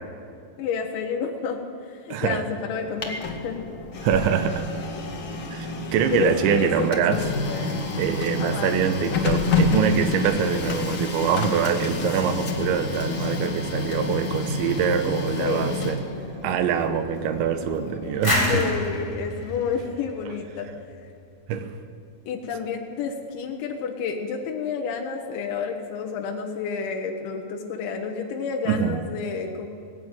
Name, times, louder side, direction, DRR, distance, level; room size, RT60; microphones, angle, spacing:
voice 1, 0.6-3.6 6.1-7.8 8.4-8.8 15.4-15.8 18.5-20.7 22.3-29.8, left 6 dB, 85° left, 2 dB, 3.6 m, -30 dB
voice 2, 2.1-2.4 4.0-4.7 5.5-7.2 8.0-16.0 16.4-18.7 21.5-21.7 28.7-29.0, right 8 dB, 85° right, 9 dB, 3.4 m, -24 dB
Printer, 2.7-18.5, left 3 dB, 45° left, 1.5 m, -29 dB
sound 1, 18.2-20.9, left 2 dB, 5° left, 4.7 m, -27 dB
18.5 x 16.0 x 9.1 m, 2.5 s
omnidirectional pair, 5.2 m